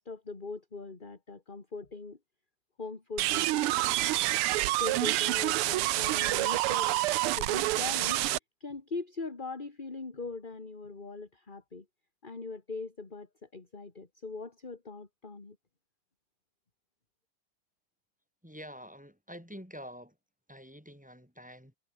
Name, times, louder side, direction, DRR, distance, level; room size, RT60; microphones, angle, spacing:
voice 1, 0.0-2.2 2.8-4.0 4.7-7.0 7.4-8.3 8.6-11.9 12.2-15.6, left 3 dB, 25° left, 2.3 m, -41 dB
sound 1, 3.2-8.4, right 17 dB, 85° right, 1.6 m, -28 dB
voice 2, 18.4-20.2 20.5-21.8, equal, 5° right, 6.9 m, -47 dB
omnidirectional pair, 2.4 m